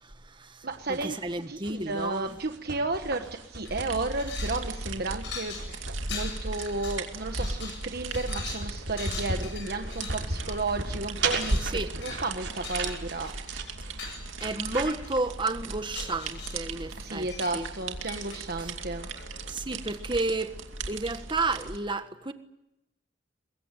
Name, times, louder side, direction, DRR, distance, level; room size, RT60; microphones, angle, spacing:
voice 1, 0.0-2.4 11.6-11.9 14.4-17.3 17.5-17.7 19.5-20.6 20.9-22.3, right 3 dB, 25° right, 1.5 m, -31 dB
voice 2, 0.6-1.2 1.5-13.3 17.0-19.1, right 2 dB, 50° right, 1.3 m, -33 dB
sound 1, 0.7-14.8, right 3 dB, 70° right, 6.9 m, -38 dB
sound 2, 3.1-3.4 3.6-19.5, left 5 dB, 65° left, 7.8 m, -44 dB
sound 3, 3.7-21.8, right 2 dB, 85° right, 2.4 m, -37 dB
23.5 x 22.0 x 9.2 m
head